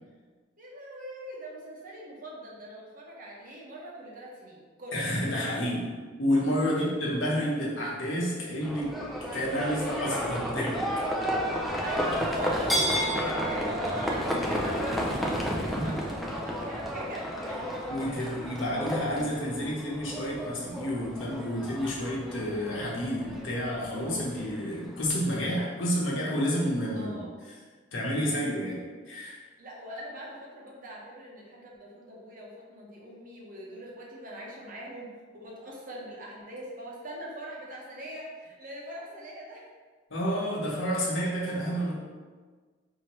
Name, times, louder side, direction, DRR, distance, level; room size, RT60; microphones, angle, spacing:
voice 1, 0.6-5.6 6.7-6.9 11.8-17.9 26.9-27.3 29.6-39.7, right 1 dB, 45° right, -3 dB, 0.9 m, -42 dB
voice 2, 4.9-8.9 9.3-10.8 15.7-16.1 17.9-27.5 27.9-28.8 29.1-29.4 40.1-41.9, equal, 85° left, -4 dB, 1.0 m, -30 dB
Livestock farm animals working animals, 8.6-25.1, equal, ahead, 0.4 m, -32 dB
4.6 x 2.8 x 3.1 m, 1.5 s
head